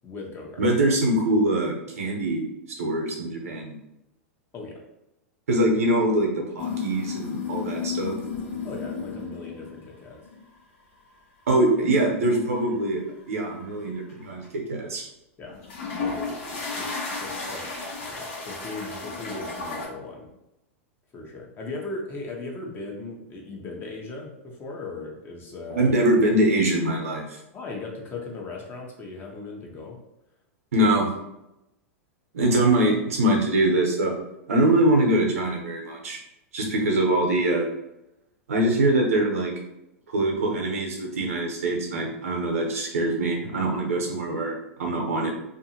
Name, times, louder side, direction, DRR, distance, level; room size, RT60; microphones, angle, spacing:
voice 1, 0.0-0.6 4.5-4.8 8.6-10.2 15.4-15.6 16.0-20.3 21.1-25.9 27.5-30.0 30.8-30.9, left 3 dB, 30° left, -1 dB, 0.8 m, -38 dB
voice 2, 0.6-2.4 2.8-3.8 5.5-8.1 11.5-13.0 13.3-15.1 25.7-27.4 30.7-31.1 32.3-34.1 34.5-36.2 36.5-37.7 38.5-39.5 40.1-45.3, right 1 dB, 80° right, 0 dB, 0.8 m, -23 dB
sound 1, 6.6-9.7 10.2-10.5 12.0-13.7 14.1-14.5 15.5-19.9, left 4 dB, 65° left, 1.0 m, -33 dB
2.6 x 2.4 x 2.8 m, 0.89 s
hypercardioid pair, 100°, 8 cm